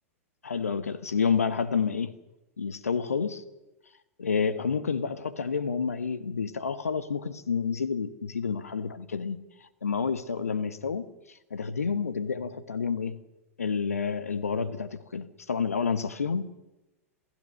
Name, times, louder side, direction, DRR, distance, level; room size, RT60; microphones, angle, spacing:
voice 1, 0.4-2.1 2.6-3.4 4.2-9.4 9.8-11.0 11.5-13.2 13.6-16.4, left 5 dB, 80° left, 1.4 m, -29 dB
27.5 x 16.0 x 6.6 m
figure-of-eight pair, 100°, 8 cm